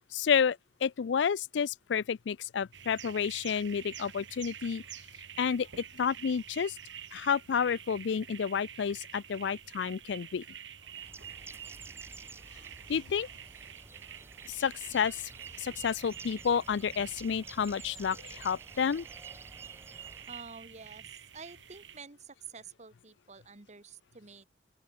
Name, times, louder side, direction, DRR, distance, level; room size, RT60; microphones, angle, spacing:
voice 1, 0.1-4.8 5.4-5.7 6.0-6.8 7.1-10.4 12.9-13.3 14.5-15.2 15.6-19.1, left 7 dB, 70° left, 0.4 m, -30 dB
sound 1, 2.7-22.0, right 9 dB, 80° right, 1.9 m, -48 dB
Bird, 10.8-20.5, right 2 dB, 15° right, 1.7 m, -52 dB
sound 2, 15.5-21.1, equal, 25° left, 7.8 m, -61 dB
voice 2, 20.3-24.5, right 5 dB, 40° right, 1.6 m, -49 dB
open air
head